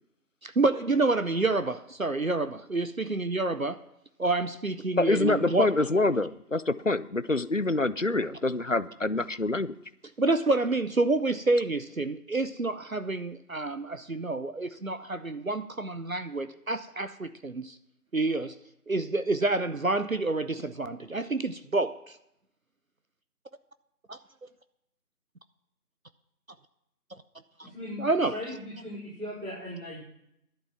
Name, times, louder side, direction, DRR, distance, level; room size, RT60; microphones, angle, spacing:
voice 1, 0.4-3.8 4.2-5.7 10.2-17.8 18.1-18.6 18.9-22.2 24.1-24.2 27.6-27.7 28.0-28.4, right 2 dB, 60° right, 11 dB, 0.7 m, -28 dB
voice 2, 5.0-9.7, left 2 dB, 55° left, 17 dB, 0.5 m, -26 dB
voice 3, 27.6-30.0, left 1 dB, 45° right, -10 dB, 5.1 m, -38 dB
11.5 x 9.8 x 5.9 m, 0.79 s
figure-of-eight pair, 180°, 46 cm